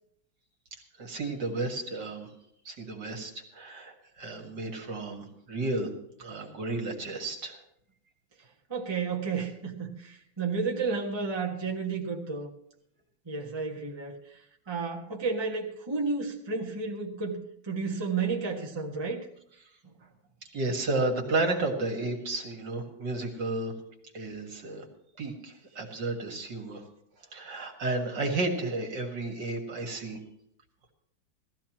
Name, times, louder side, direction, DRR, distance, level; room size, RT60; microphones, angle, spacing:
voice 1, 1.0-2.3 2.7-5.9 6.2-7.6 20.5-23.7 24.1-24.8 25.2-26.8 27.3-30.2, right 2 dB, 60° right, 2 dB, 2.4 m, -32 dB
voice 2, 8.7-12.5 13.2-14.4 14.7-19.2, right 4 dB, 15° right, 0 dB, 1.4 m, -32 dB
18.0 x 14.0 x 3.0 m, 0.74 s
omnidirectional pair, 2.1 m